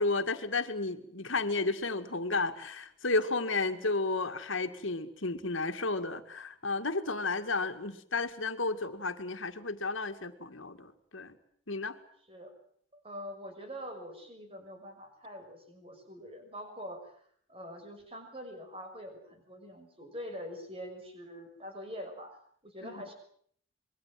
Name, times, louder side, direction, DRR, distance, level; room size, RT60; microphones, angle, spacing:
voice 1, 0.0-11.3 11.7-12.0 22.8-23.0, left 3 dB, 75° left, 8 dB, 2.2 m, -32 dB
voice 2, 12.9-17.2 17.5-22.4 22.6-23.1, equal, 30° right, 5 dB, 6.1 m, -44 dB
27.0 x 22.5 x 7.7 m, 0.62 s
head